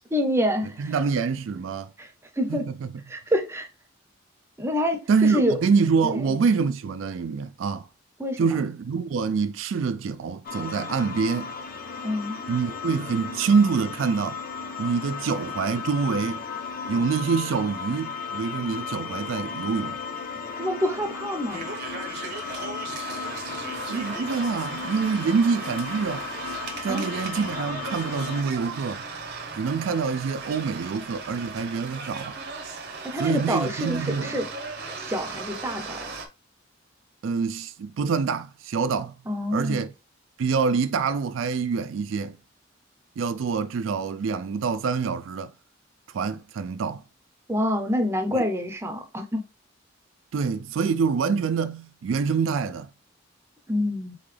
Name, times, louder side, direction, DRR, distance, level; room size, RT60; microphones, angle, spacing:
voice 1, 0.1-0.9 2.0-2.1 2.4-2.7 3.1-3.7 4.6-5.6 6.0-6.2 8.2-8.5 12.0-12.4 20.6-21.6 26.9-27.2 33.0-34.5 35.0-36.1 39.3-39.8 47.5-49.4 53.7-54.2, equal, 15° right, 0.6 m, -27 dB
voice 2, 0.6-1.9 2.5-2.9 5.1-7.9 8.4-11.5 12.5-14.4 14.8-16.4 16.9-20.0 23.9-26.2 26.8-29.0 29.5-32.3 33.2-34.4 37.2-39.1 39.5-39.9 40.4-42.4 43.2-45.5 46.1-47.0 48.3-48.5 50.3-52.9, right 5 dB, 70° right, 0.3 m, -26 dB
sound 1, 10.4-28.4, left 5 dB, 45° left, 0.7 m, -35 dB
sound 2, 21.5-36.3, right 4 dB, 55° right, 0.8 m, -37 dB
3.8 x 3.8 x 3.2 m
head